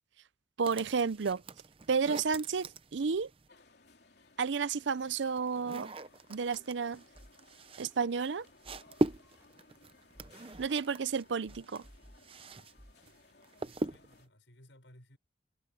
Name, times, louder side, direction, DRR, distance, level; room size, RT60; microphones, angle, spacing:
sound 1, 0.6-3.5 4.5-12.7 13.0-14.3, right 1 dB, 30° right, 0.7 m, -40 dB
voice 1, 0.6-1.4 1.9-3.3 4.4-5.9 6.3-7.0 7.8-8.5 10.6-11.8, right 5 dB, 80° right, 0.5 m, -31 dB
sound 2, 3.5-14.3, left 3 dB, 60° left, 3.3 m, -61 dB
sound 3, 7.1-7.3 7.9-8.0 8.5-9.5 10.0-11.1 11.5-12.5 12.8-13.0, equal, 15° right, 2.0 m, -56 dB
voice 2, 13.6-15.2, left 1 dB, 80° left, 6.0 m, -59 dB
head